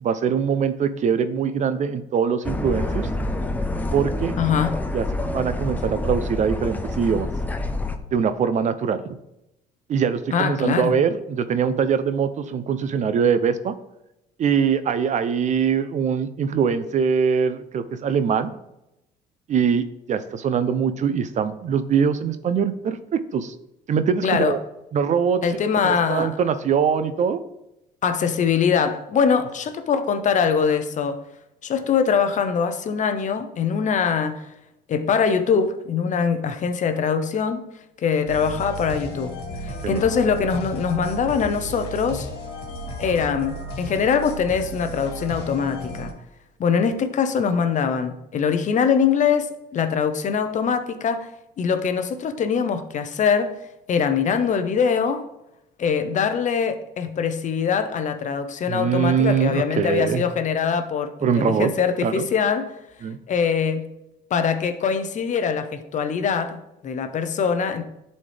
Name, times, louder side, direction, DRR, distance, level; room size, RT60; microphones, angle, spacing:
voice 1, 0.0-3.1 3.9-4.4 4.9-5.1 5.3-7.3 8.1-9.0 9.9-13.7 14.4-18.5 19.5-23.5 23.9-24.6 24.9-25.4 25.8-27.4 39.8-40.0 58.7-60.2 61.2-61.7 62.0-62.3 63.0-63.2, right 7 dB, 45° right, 0.6 m, -22 dB
sound 1, 2.4-8.0, left 2 dB, 10° left, 0.6 m, -27 dB
voice 2, 4.4-4.8 10.3-10.9 24.2-24.5 25.4-26.4 28.0-31.2 31.6-34.4 34.9-37.6 38.0-39.4 39.6-42.3 43.0-46.1 46.6-51.3 51.6-53.6 53.9-55.3 55.8-62.7 63.3-63.9 64.3-67.8, left 6 dB, 45° left, 0.8 m, -23 dB
sound 2, 38.3-46.1, equal, 70° left, 1.8 m, -34 dB
10.5 x 4.2 x 3.4 m
cardioid pair, 110°, 17 cm